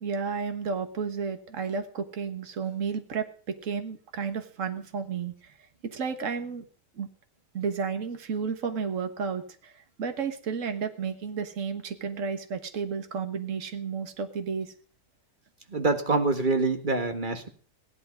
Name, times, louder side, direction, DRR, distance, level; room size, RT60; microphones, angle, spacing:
voice 1, 0.0-5.3 5.8-6.6 7.0-7.1 7.5-9.4 10.0-14.7, right 6 dB, 50° right, 8 dB, 1.7 m, -32 dB
voice 2, 15.7-17.5, right 3 dB, 30° right, 6 dB, 1.7 m, -25 dB
16.5 x 11.5 x 5.2 m, 0.43 s
omnidirectional pair, 1.8 m